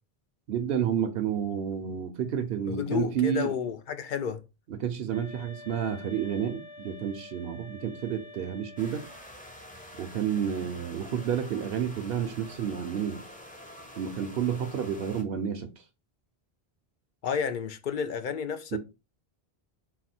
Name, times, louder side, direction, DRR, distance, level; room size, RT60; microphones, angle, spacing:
voice 1, 0.5-3.5 4.7-9.1 10.0-13.2 14.0-15.7 18.7-18.8, right 8 dB, 70° right, 0.8 m, -30 dB
voice 2, 2.7-4.4 17.2-18.8, left 7 dB, 60° left, 0.6 m, -31 dB
sound 1, 5.1-9.3, left 2 dB, 90° left, 1.2 m, -47 dB
sound 2, 8.8-15.2, left 1 dB, 10° left, 0.5 m, -47 dB
4.1 x 2.3 x 4.2 m
omnidirectional pair, 1.0 m